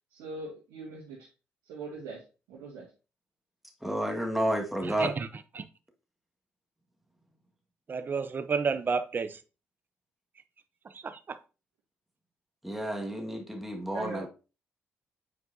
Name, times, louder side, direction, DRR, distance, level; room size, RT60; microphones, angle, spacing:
voice 1, 0.1-1.3 1.6-2.2 2.5-2.9 13.9-14.3, right 3 dB, 90° right, 1.8 m, -41 dB
voice 2, 3.8-5.1 12.6-14.3, right 1 dB, 5° right, 1.6 m, -31 dB
voice 3, 4.8-5.3 5.5-5.6 7.9-9.4 10.9-11.4, right 5 dB, 40° right, 0.7 m, -31 dB
8.3 x 4.6 x 2.6 m
supercardioid pair, 65°, 5 cm